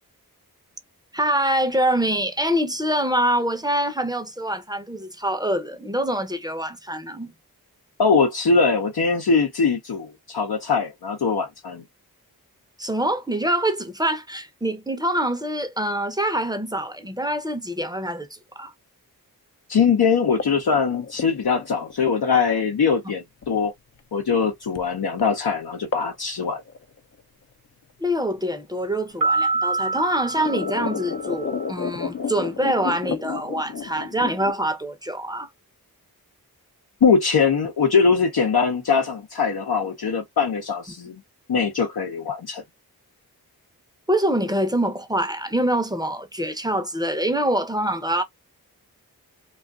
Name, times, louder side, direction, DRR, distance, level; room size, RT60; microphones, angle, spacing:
voice 1, 1.1-7.3 12.8-18.7 28.0-35.5 44.1-48.2, right 1 dB, 10° right, 0.6 m, -25 dB
voice 2, 8.0-11.8 19.7-23.7 24.1-26.6 37.0-41.2 41.5-42.6, left 5 dB, 80° left, 0.7 m, -21 dB
sound 1, 20.3-22.7 23.4-23.5 24.8-24.9 25.2-25.3 25.9-26.2 26.4-27.2 28.4-28.5 29.4-29.5 30.0-34.5, left 6 dB, 45° left, 0.5 m, -31 dB
sound 2, 29.2-31.7, right 3 dB, 60° right, 0.8 m, -26 dB
2.4 x 2.4 x 2.2 m
cardioid pair, 40°, 37 cm